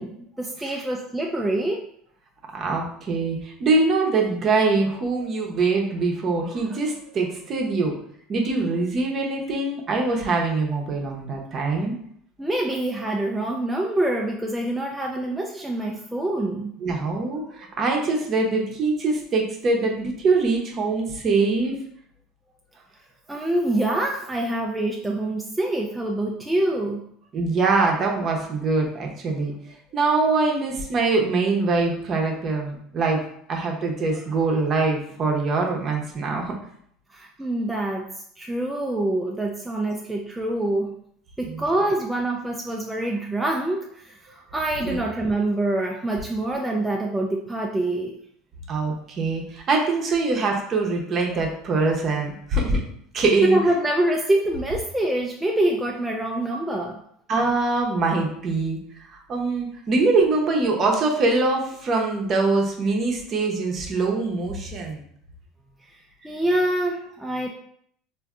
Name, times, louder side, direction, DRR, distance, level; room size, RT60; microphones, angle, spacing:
voice 1, 0.0-1.9 12.4-16.8 23.3-27.1 37.1-41.0 41.4-48.1 53.5-57.0 65.9-66.0 66.2-67.5, right 1 dB, 5° right, -1 dB, 0.3 m, -25 dB
voice 2, 2.5-7.9 8.3-11.9 16.8-21.7 27.3-29.5 29.9-33.2 33.5-36.4 41.5-41.6 44.8-45.0 48.7-52.8 53.1-53.6 57.3-58.8 59.1-65.0, right 3 dB, 40° right, 1 dB, 0.7 m, -23 dB
3.4 x 2.6 x 2.4 m, 0.67 s
supercardioid pair, 105°, 0 cm